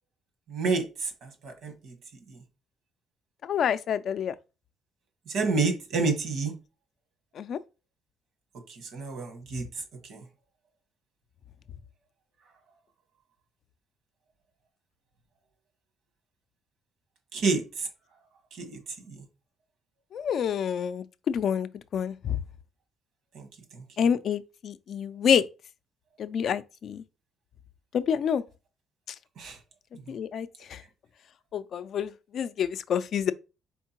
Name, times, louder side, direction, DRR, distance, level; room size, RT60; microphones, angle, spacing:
voice 1, 0.5-1.9 2.3-2.4 5.3-6.5 8.7-9.6 10.1-10.2 17.3-17.9 18.5-18.8 19.1-19.2 23.3-23.5 23.7-23.8 29.4-29.6, right 4 dB, 75° right, 1.2 m, -29 dB
voice 2, 3.4-4.3 7.4-7.6 20.1-22.4 24.0-25.4 26.2-27.0 27.9-28.4 30.1-30.8 31.5-33.3, left 8 dB, 60° left, 0.3 m, -28 dB
4.4 x 3.6 x 2.9 m
cardioid pair, 90°, 0 cm